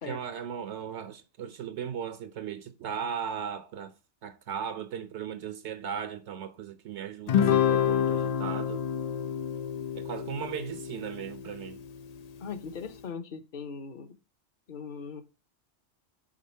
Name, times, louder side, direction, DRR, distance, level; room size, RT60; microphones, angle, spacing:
voice 1, 0.1-3.9 4.2-8.9 9.9-11.8, right 8 dB, 70° right, 0.9 m, -37 dB
Guitar, 7.3-11.9, left 9 dB, 85° left, 0.3 m, -28 dB
voice 2, 12.4-14.1 14.7-15.2, left 6 dB, 45° left, 0.9 m, -39 dB
5.1 x 3.9 x 5.4 m
omnidirectional pair, 1.2 m